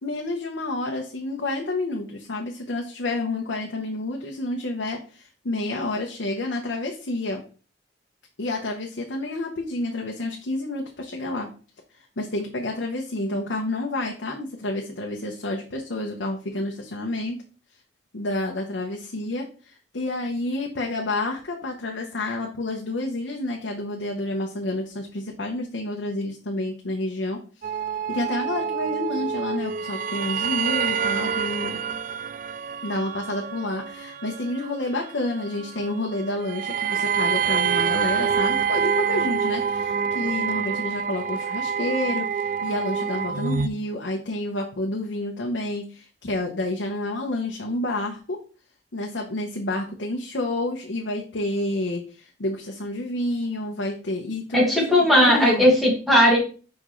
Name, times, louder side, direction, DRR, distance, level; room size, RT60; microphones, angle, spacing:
voice 1, 0.0-7.4 8.4-11.5 12.2-17.4 18.1-27.7 28.1-31.8 32.8-48.4 48.9-55.7, left 2 dB, 80° left, 1 dB, 0.9 m, -29 dB
sound 1, 27.6-43.7, right 7 dB, 50° right, 0.3 m, -27 dB
voice 2, 54.5-56.4, equal, ahead, -4 dB, 2.3 m, -17 dB
6.1 x 5.2 x 3.1 m, 0.38 s
head